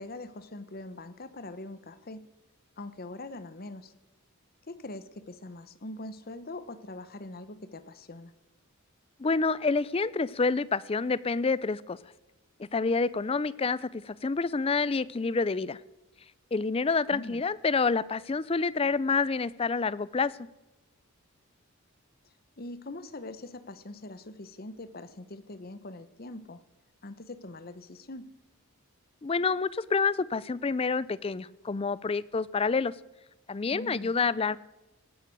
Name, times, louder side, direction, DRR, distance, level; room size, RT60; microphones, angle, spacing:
voice 1, 0.0-2.2 2.8-3.9 4.7-8.3 17.1-17.4 22.6-26.6 27.0-28.3 33.7-34.1, left 2 dB, 45° left, 13 dB, 1.0 m, -42 dB
voice 2, 9.2-12.0 12.6-15.8 16.5-20.3 29.2-32.9 33.5-34.6, left 4 dB, 25° left, 19 dB, 0.4 m, -28 dB
18.0 x 9.8 x 7.7 m, 1.1 s
head